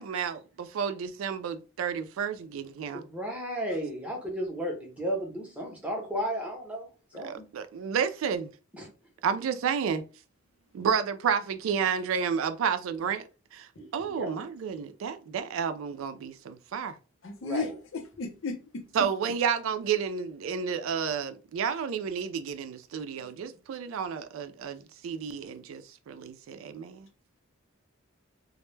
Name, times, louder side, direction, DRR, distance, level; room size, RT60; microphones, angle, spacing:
voice 1, 0.0-3.0 7.2-8.5 9.2-10.0 10.7-13.2 13.5-17.0 18.9-27.1, right 7 dB, 80° right, 0.3 m, -31 dB
voice 2, 2.9-6.9 7.1-7.4 8.7-8.9 13.8-14.3 17.4-17.7, equal, 5° right, 0.6 m, -34 dB
voice 3, 17.2-18.8 23.2-23.3, left 4 dB, 75° left, 0.6 m, -35 dB
2.1 x 2.0 x 3.1 m
head